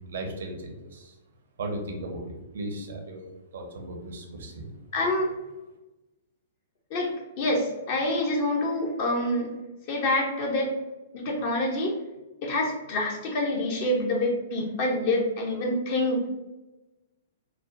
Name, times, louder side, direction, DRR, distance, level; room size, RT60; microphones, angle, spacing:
voice 1, 0.1-1.1 1.6-4.7, right 1 dB, 60° right, 3 dB, 0.7 m, -36 dB
voice 2, 4.9-5.3 6.9-9.5 9.9-10.7 11.1-12.0 12.4-16.2, left 1 dB, 45° left, 0 dB, 0.7 m, -26 dB
4.5 x 2.2 x 2.5 m, 1.1 s
figure-of-eight pair, 110°, 0 cm